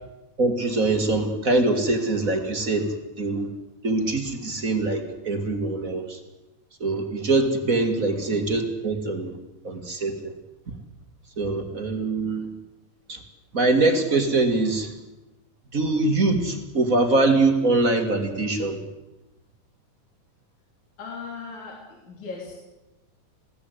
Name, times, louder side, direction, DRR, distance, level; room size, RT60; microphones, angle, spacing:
voice 1, 0.4-3.5 3.8-6.2 6.8-9.4 9.6-10.3 11.4-12.5 13.1-13.2 13.5-15.0 15.7-18.8, right 2 dB, 30° right, 5 dB, 1.9 m, -23 dB
voice 2, 8.1-8.4 12.2-12.5 21.0-22.5, left 4 dB, 65° left, -1 dB, 4.7 m, -39 dB
22.0 x 17.0 x 8.1 m, 1.0 s
omnidirectional pair, 3.7 m